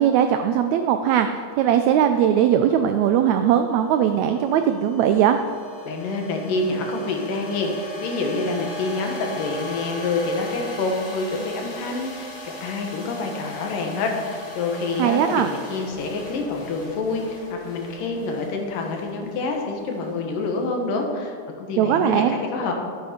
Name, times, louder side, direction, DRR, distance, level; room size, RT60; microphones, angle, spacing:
voice 1, 0.0-5.4 15.0-15.5 21.8-22.4, right 9 dB, 90° right, 7 dB, 1.6 m, -19 dB
sound 1, 2.6-20.9, equal, 40° left, 2.3 m, -39 dB
voice 2, 5.9-22.7, left 3 dB, 75° left, 2 dB, 3.0 m, -27 dB
12.0 x 9.4 x 5.1 m, 2.2 s
omnidirectional pair, 3.9 m